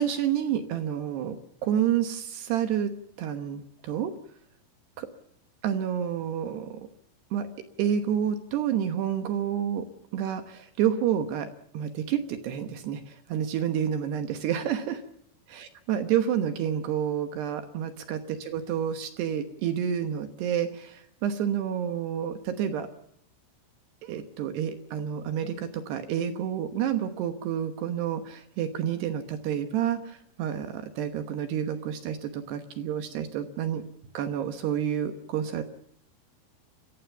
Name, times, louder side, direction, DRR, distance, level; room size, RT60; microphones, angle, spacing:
voice 1, 0.0-1.4 1.6-2.9 3.2-4.1 5.0-5.1 5.6-6.8 7.3-7.5 7.8-9.9 10.1-11.5 11.7-15.0 15.5-22.9 24.0-33.8 34.1-35.6, right 9 dB, 70° right, 8 dB, 2.8 m, -29 dB
28.5 x 15.0 x 7.1 m, 0.74 s
omnidirectional pair, 5.8 m